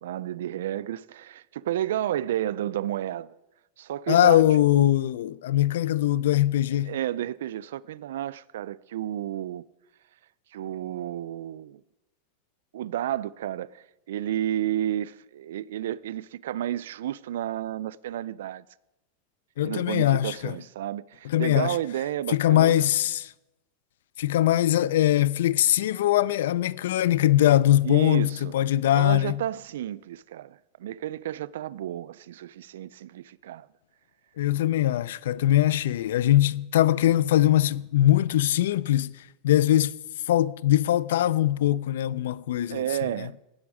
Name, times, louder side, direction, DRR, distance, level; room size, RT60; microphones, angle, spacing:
voice 1, 0.0-3.4 3.8-4.4 6.8-9.7 10.5-11.8 12.7-18.6 19.6-22.9 27.8-28.5 28.9-33.7 42.7-43.3, right 12 dB, 90° right, 0.3 m, -31 dB
voice 2, 4.1-6.9 19.6-20.6 21.2-21.8 22.3-23.3 24.2-29.4 34.4-39.1 39.4-40.0 40.3-42.9, left 13 dB, 90° left, 0.4 m, -22 dB
17.5 x 7.1 x 4.8 m
supercardioid pair, 145°, 0 cm